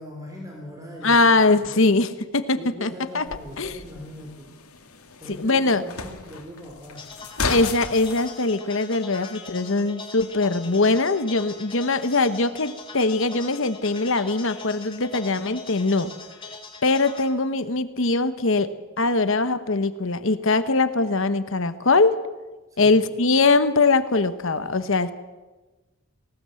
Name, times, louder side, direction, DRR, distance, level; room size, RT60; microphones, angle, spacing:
voice 1, 0.0-1.9 2.5-4.5 5.2-7.1 22.7-23.0, equal, 15° right, 0 dB, 3.4 m, -40 dB
voice 2, 1.0-2.9 3.1-3.2 3.6-3.7 5.4-5.8 7.5-16.1 16.8-18.7 19.0-22.2 22.8-25.1, left 3 dB, 60° left, 12 dB, 1.1 m, -21 dB
sound 1, 3.3-8.3, left 4 dB, 80° left, 2.3 m, -34 dB
sound 2, 7.0-17.3, left 3 dB, 25° left, 2.5 m, -41 dB
19.0 x 18.5 x 7.7 m, 1.2 s
head